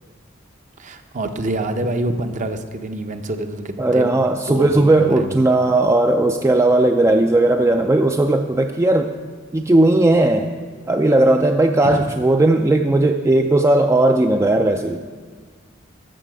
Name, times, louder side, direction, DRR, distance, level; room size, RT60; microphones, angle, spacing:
voice 1, 0.8-4.1 4.5-5.4 11.8-12.0, right 1 dB, 40° right, 7 dB, 0.7 m, -26 dB
voice 2, 3.8-9.1 9.5-10.5 10.9-15.0, right 2 dB, 15° right, 5 dB, 0.3 m, -16 dB
14.0 x 6.8 x 4.9 m, 1.5 s
head